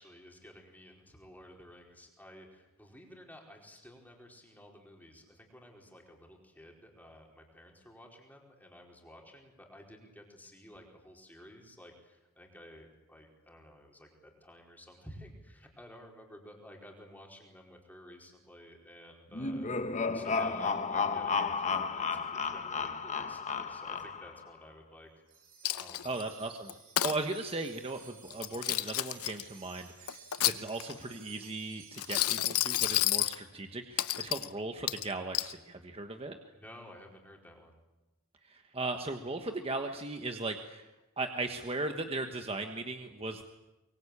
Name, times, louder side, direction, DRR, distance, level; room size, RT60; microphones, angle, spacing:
voice 1, 0.0-19.7 20.1-25.1 25.7-26.1 27.1-27.2 36.5-37.8, equal, 10° left, 0 dB, 4.6 m, -53 dB
sound 1, 19.3-24.4, left 5 dB, 30° left, 1.1 m, -33 dB
Wind chime, 25.3-33.5, right 6 dB, 40° right, 6.5 m, -55 dB
Coin (dropping), 25.6-26.2 26.7-27.2 28.3-29.4 30.1-31.0 31.9-33.4 34.0-34.5 34.9-35.5, left 14 dB, 85° left, 0.8 m, -30 dB
voice 2, 26.0-26.7 27.0-36.4 38.4-40.9 41.2-43.4, right 2 dB, 25° right, 5 dB, 1.4 m, -37 dB
24.0 x 23.0 x 8.7 m, 1.0 s
head